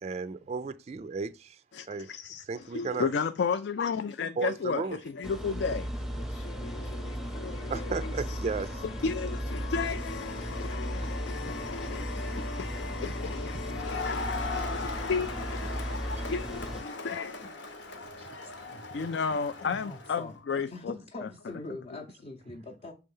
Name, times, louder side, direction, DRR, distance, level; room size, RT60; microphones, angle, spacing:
voice 1, 0.0-1.6 1.9-2.1 2.5-3.1 4.4-5.0 7.7-8.8 10.7-11.1 13.5-13.8 16.2-16.3, right 4 dB, 35° right, 0.3 m, -35 dB
voice 2, 1.7-17.8 18.9-20.9 21.2-21.3, left 5 dB, 65° left, 0.4 m, -34 dB
sound 1, 5.2-16.8, equal, ahead, 0.7 m, -36 dB
Crowd, 13.7-20.2, left 3 dB, 80° left, 1.2 m, -39 dB
voice 3, 18.2-18.8 19.6-20.3 20.7-22.9, left 2 dB, 35° left, 0.7 m, -43 dB
6.6 x 3.4 x 5.5 m
head